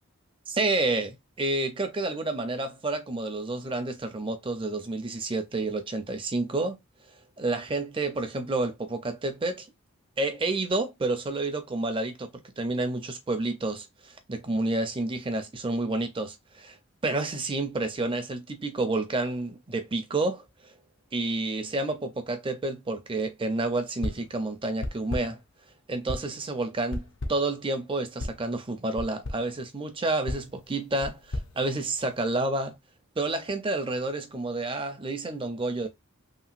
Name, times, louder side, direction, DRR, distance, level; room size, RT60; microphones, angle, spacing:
voice 1, 0.5-6.8 7.4-9.7 10.2-12.3 12.6-16.8 17.0-20.7 21.1-25.4 25.9-32.8 33.2-35.9, right 2 dB, 25° right, 0.5 m, -29 dB
sound 1, 24.0-24.4 24.8-25.5 26.1-26.4 26.9-27.6 28.2-28.5 29.0-29.5 30.3-32.3, left 1 dB, 60° left, 0.6 m, -36 dB
3.0 x 2.9 x 2.4 m
head